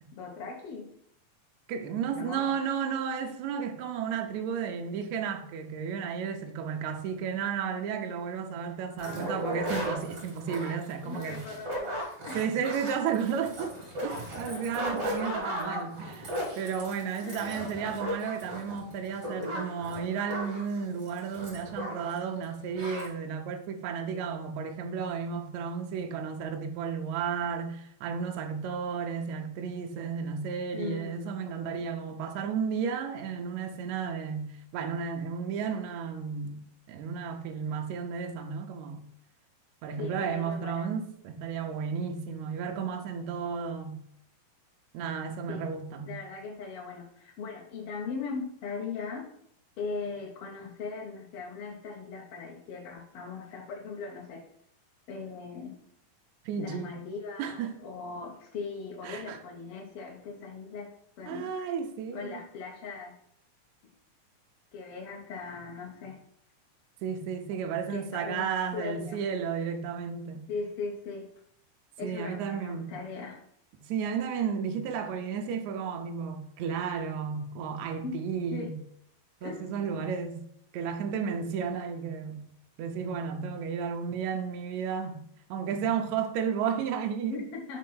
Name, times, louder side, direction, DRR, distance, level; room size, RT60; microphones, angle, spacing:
voice 1, 0.1-0.9 2.1-2.6 9.0-9.8 11.0-12.4 14.5-14.9 15.7-15.8 17.2-17.6 30.7-31.3 40.0-40.9 45.5-45.6 46.1-49.3 49.8-54.4 55.1-55.8 56.6-60.9 61.2-61.5 62.1-63.1 64.7-66.2 67.9-68.5 68.7-69.2 70.5-71.3 72.0-73.4 78.0-78.1 78.5-78.7 79.4-79.6 87.3-87.8, left 4 dB, 85° left, 1.2 m, -39 dB
voice 2, 1.7-11.4 12.3-13.8 14.0-36.6 36.9-39.1 39.8-44.0 44.9-46.2 56.4-57.0 57.4-57.8 59.0-59.4 61.3-62.4 67.0-70.4 72.0-73.0 73.9-78.8 79.4-80.4 80.7-82.4 82.8-85.2 85.5-87.4, right 6 dB, 80° right, 1.7 m, -33 dB
sound 1, 9.0-22.2 22.4-22.5 22.7-23.1, equal, 55° right, 2.7 m, -36 dB
6.5 x 3.1 x 5.5 m
omnidirectional pair, 4.0 m